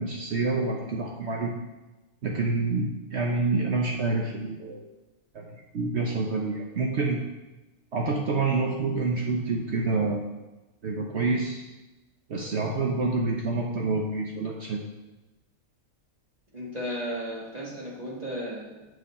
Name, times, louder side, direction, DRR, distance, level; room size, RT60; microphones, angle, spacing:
voice 1, 0.0-1.5 2.2-4.9 5.3-5.4 5.7-7.3 7.9-10.2 10.8-11.6 12.3-14.8, right 3 dB, 55° right, 0 dB, 1.0 m, -27 dB
voice 2, 16.5-18.9, equal, 30° right, -6 dB, 1.6 m, -34 dB
7.2 x 6.5 x 4.2 m, 1.1 s
omnidirectional pair, 1.4 m